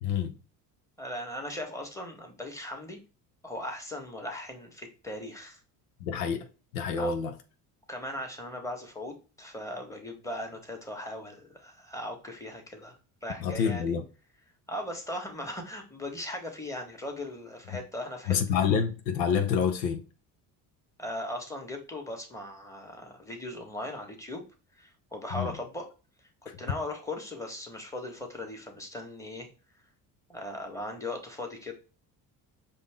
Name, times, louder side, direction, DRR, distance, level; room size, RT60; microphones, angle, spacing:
voice 1, 0.0-0.3 6.0-6.5 6.7-7.3 13.4-14.0 18.3-20.0 25.3-25.5, left 7 dB, 85° left, 0.8 m, -27 dB
voice 2, 1.0-3.0 3.4-5.6 7.0-7.1 7.9-13.9 14.7-18.3 21.0-24.4 24.8-25.9 26.4-29.5 30.3-31.7, left 1 dB, 5° left, 1.5 m, -38 dB
5.1 x 2.7 x 3.6 m
hypercardioid pair, 65°, 48 cm